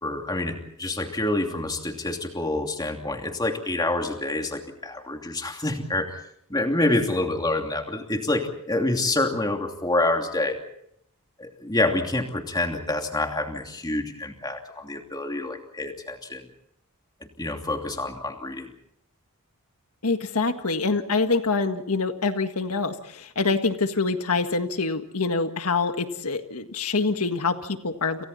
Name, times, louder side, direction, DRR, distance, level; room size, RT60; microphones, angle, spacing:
voice 1, 0.0-6.2 6.5-10.6 11.4-16.4 17.4-18.7, left 2 dB, 20° left, 3 dB, 2.8 m, -27 dB
voice 2, 20.0-28.2, left 4 dB, 85° left, 7 dB, 1.7 m, -25 dB
30.0 x 28.5 x 4.2 m, 0.74 s
head